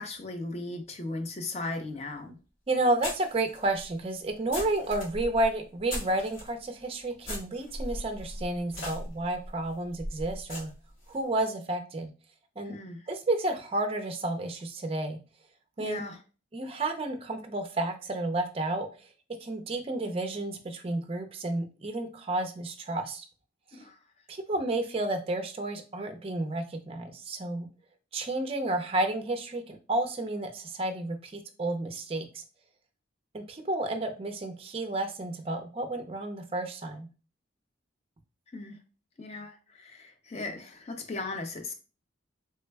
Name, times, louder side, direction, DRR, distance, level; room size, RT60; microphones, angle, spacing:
voice 1, 0.0-2.4 12.6-13.1 15.8-16.2 23.7-24.0 38.5-38.8 39.2-41.7, left 2 dB, 30° left, 0.5 m, -37 dB
sound 1, 1.9-2.0 3.0-6.5 7.2-11.2, left 1 dB, 75° left, 1.5 m, -39 dB
voice 2, 2.7-10.7 11.1-12.1 12.6-12.8 13.1-15.2 15.8-16.0 16.5-18.9 19.4-23.2 24.3-27.7 28.1-32.4 33.3-37.1, right 2 dB, 30° right, 0.4 m, -31 dB
3.3 x 2.1 x 3.3 m
head